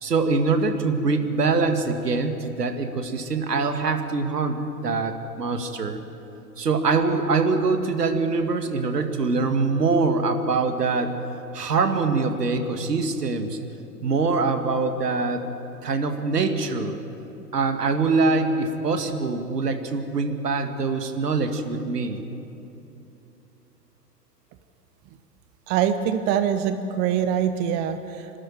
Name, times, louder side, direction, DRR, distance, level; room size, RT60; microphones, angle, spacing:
voice 1, 0.0-6.0 6.6-11.1 11.5-13.6 14.0-15.4 15.8-17.0 17.5-22.2, right 4 dB, 70° right, 7 dB, 2.1 m, -24 dB
voice 2, 25.7-28.3, right 9 dB, 20° right, 10 dB, 0.7 m, -24 dB
27.5 x 12.5 x 9.3 m, 2.9 s
figure-of-eight pair, 105°, 49 cm